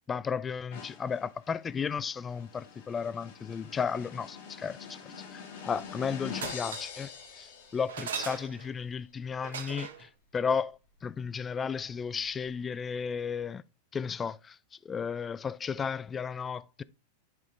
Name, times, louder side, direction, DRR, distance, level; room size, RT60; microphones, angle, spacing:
voice 1, 0.1-13.6 13.9-14.6 14.8-16.8, left 6 dB, 20° left, 0.3 m, -34 dB
sound 1, 0.7-8.3, left 7 dB, 65° left, 1.7 m, -45 dB
sound 2, 5.6-6.0 6.3-7.0 7.9-8.8 9.4-10.1 12.2-12.3 12.5-12.6, right 7 dB, 85° right, 1.1 m, -39 dB
10.5 x 3.7 x 3.2 m
hypercardioid pair, 120°, 0 cm